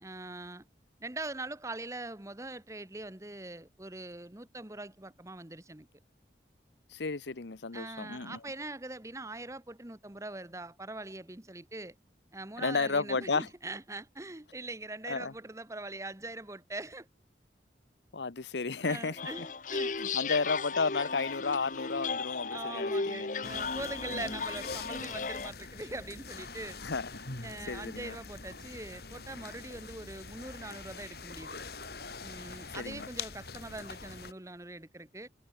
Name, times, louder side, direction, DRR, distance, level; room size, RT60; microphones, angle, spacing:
voice 1, 0.0-0.6 1.0-5.9 7.7-11.9 12.3-17.1 18.8-20.0 22.1-22.2 22.5-26.8 27.4-31.6 32.2-35.3, right 2 dB, 15° right, 1.1 m, -42 dB
voice 2, 6.9-8.4 12.6-13.5 15.1-15.3 18.1-19.5 20.0-23.6 24.1-24.4 26.8-27.2 27.7-28.2 32.8-33.1, left 4 dB, 85° left, 0.9 m, -33 dB
sound 1, 19.2-25.5, left 4 dB, 45° left, 1.0 m, -35 dB
sound 2, 23.4-34.3, left 4 dB, 60° left, 3.2 m, -44 dB
head